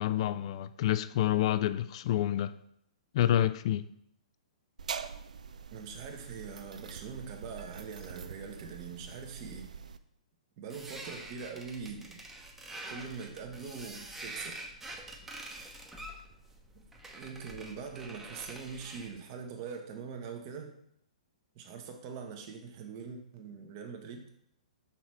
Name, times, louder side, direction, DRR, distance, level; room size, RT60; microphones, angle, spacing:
voice 1, 0.0-2.5 3.1-3.8, left 12 dB, 50° left, 0.3 m, -28 dB
sound 1, 4.8-10.0, right 6 dB, 75° right, 0.4 m, -44 dB
voice 2, 5.7-9.7 10.6-12.2 12.9-14.6 16.7-16.9 17.1-20.7 21.5-24.3, right 5 dB, 40° right, 1.1 m, -43 dB
sound 2, 10.7-19.2, right 1 dB, 10° right, 0.9 m, -46 dB
5.8 x 4.1 x 4.7 m
figure-of-eight pair, 120°, 4 cm